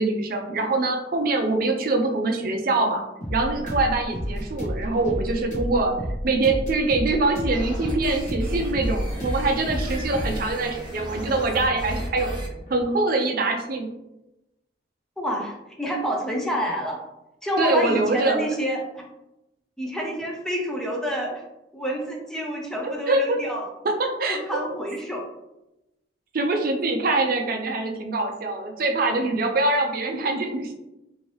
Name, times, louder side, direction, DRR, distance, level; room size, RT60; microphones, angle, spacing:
voice 1, 0.0-3.0 3.3-5.9 6.2-12.4 12.7-13.9 17.6-18.5 22.8-23.4 23.8-24.4 26.3-30.7, right 2 dB, 55° right, 3 dB, 0.4 m, -24 dB
sound 1, 3.2-12.8, equal, 45° left, 0.9 m, -31 dB
sound 2, 7.5-12.5, equal, 25° right, 0.9 m, -34 dB
voice 2, 15.2-17.0 17.4-19.0 19.8-21.4 21.7-23.7 24.3-25.3, equal, 5° left, -1 dB, 0.4 m, -28 dB
2.8 x 2.7 x 3.1 m, 0.93 s
head